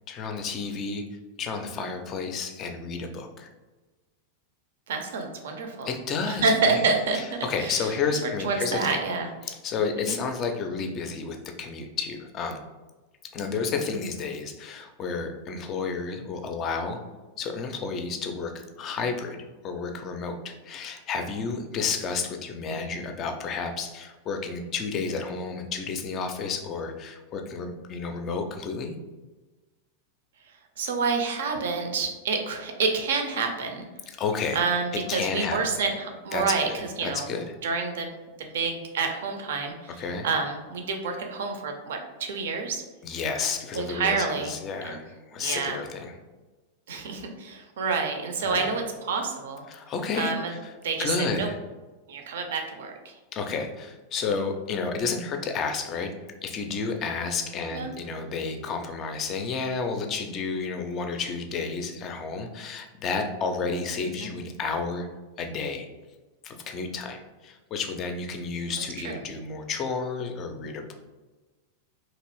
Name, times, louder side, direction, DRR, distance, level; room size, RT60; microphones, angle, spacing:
voice 1, 0.1-1.0 1.4-3.5 5.8-6.8 7.4-9.0 9.5-12.6 13.3-17.0 17.4-18.5 18.8-28.9 34.1-34.6 35.1-35.6 36.3-37.4 40.0-40.3 43.0-46.1 48.4-48.7 49.7-50.7 51.0-51.6 53.3-56.1 56.4-65.1 65.4-65.9 66.4-70.9, left 4 dB, 30° left, 5 dB, 0.4 m, -31 dB
voice 2, 4.9-5.9 6.3-7.9 8.2-9.3 10.1-10.2 22.7-22.9 30.8-33.9 34.5-38.1 38.4-42.8 43.7-44.5 44.8-45.0 45.4-45.8 46.9-49.7 50.1-50.5 50.8-51.5 52.1-53.1 57.7-57.9 64.0-64.3 69.0-69.2, right 4 dB, 60° right, 4 dB, 0.5 m, -28 dB
2.9 x 2.5 x 3.0 m, 1.2 s
figure-of-eight pair, 90°, 0 cm